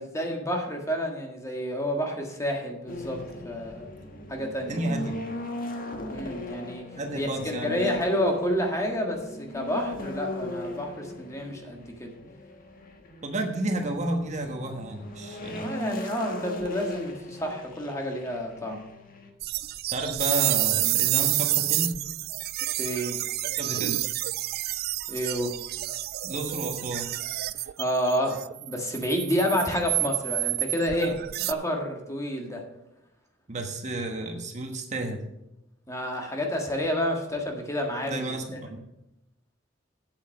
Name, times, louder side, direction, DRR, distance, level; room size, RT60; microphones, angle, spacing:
voice 1, 0.0-3.9 4.3-4.8 6.1-6.9 7.2-12.1 15.5-18.8 22.8-23.2 25.1-25.6 27.8-31.1 31.5-32.6 35.9-38.2, equal, 15° left, 2 dB, 1.6 m, -29 dB
sound 1, 2.9-19.3, left 1 dB, 45° left, 1.4 m, -38 dB
voice 2, 4.7-5.2 7.0-7.9 13.2-15.8 19.9-21.9 23.6-24.0 26.2-27.2 31.0-31.2 33.5-35.2 38.1-38.8, right 1 dB, 40° right, 3 dB, 1.3 m, -32 dB
sound 2, 19.4-31.5, right 17 dB, 55° right, 0.3 m, -29 dB
8.1 x 8.0 x 6.5 m, 0.87 s
head